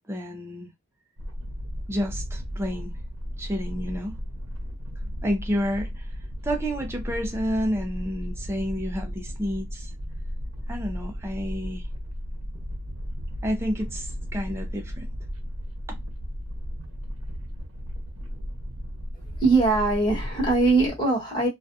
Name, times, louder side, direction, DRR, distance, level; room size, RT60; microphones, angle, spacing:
voice 1, 0.1-0.7 1.9-3.0 3.4-4.2 5.2-6.1 6.4-9.9 10.7-11.9 13.4-15.1 15.9-16.0, equal, 10° right, 0.5 m, -30 dB
sound 1, 1.2-20.9, equal, 80° right, 0.7 m, -35 dB
voice 2, 19.4-21.5, right 3 dB, 20° left, 1.2 m, -21 dB
2.4 x 2.3 x 2.6 m
head